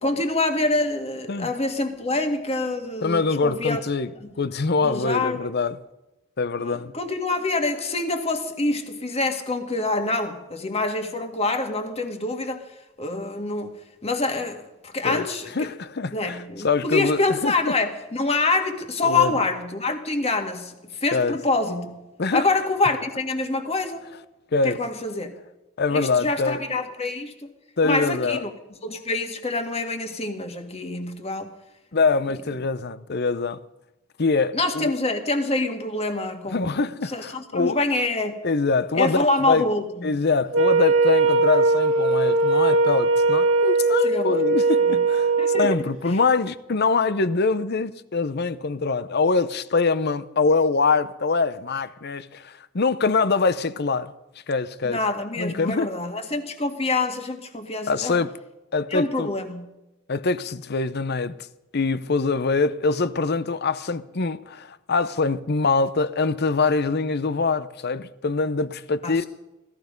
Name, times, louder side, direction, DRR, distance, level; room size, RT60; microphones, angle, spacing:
voice 1, 0.0-3.8 4.2-4.3 4.8-5.5 6.6-12.6 13.0-13.7 14.0-15.7 16.1-22.0 22.3-24.1 24.6-25.3 25.9-27.5 27.8-28.5 28.8-31.5 34.5-36.8 37.1-38.3 38.9-40.2 44.0-44.3 44.9-45.0 45.4-45.8 54.8-58.2 58.9-59.7 69.0-69.3, left 2 dB, 30° left, 1.8 m, -26 dB
voice 2, 3.0-4.1 4.4-5.8 6.4-6.9 15.0-15.2 15.5-17.7 19.0-19.3 21.1-21.4 22.2-22.5 24.5-24.8 25.8-26.6 27.8-28.4 31.9-33.6 34.2-34.9 36.5-37.8 38.4-39.6 40.0-54.1 54.5-55.0 55.4-55.9 57.9-58.4 58.7-59.3 60.1-61.4 61.7-69.2, left 4 dB, 55° left, 0.8 m, -24 dB
Wind instrument woodwind instrument, 40.5-45.8, right 3 dB, 80° right, 1.6 m, -20 dB
17.0 x 14.5 x 5.3 m
head